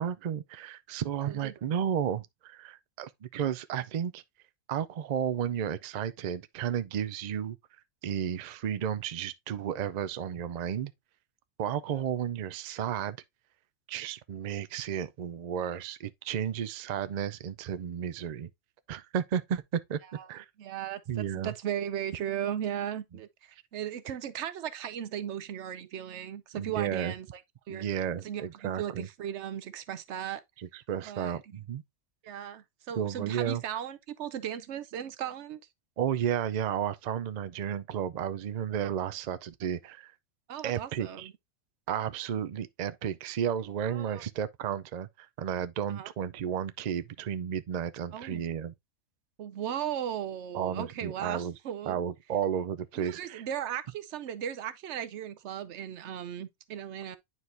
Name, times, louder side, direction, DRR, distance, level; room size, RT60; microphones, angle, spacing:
voice 1, 0.0-4.2 4.7-7.6 8.0-10.9 11.6-13.2 13.9-18.5 18.9-20.0 20.3-20.5 21.1-21.5 26.6-27.1 27.7-29.1 30.6-31.8 33.0-33.6 36.0-40.1 40.6-41.3 41.9-48.7 50.5-51.5 51.9-53.4, right 9 dB, 85° right, 0.3 m, -33 dB
voice 2, 20.6-27.4 27.7-27.8 28.2-30.4 31.0-31.4 32.2-35.6 40.5-41.3 43.9-44.2 45.9-46.1 48.1-48.4 49.4-52.0 53.0-57.2, right 10 dB, 65° right, 0.9 m, -37 dB
9.7 x 4.5 x 2.6 m
omnidirectional pair, 1.4 m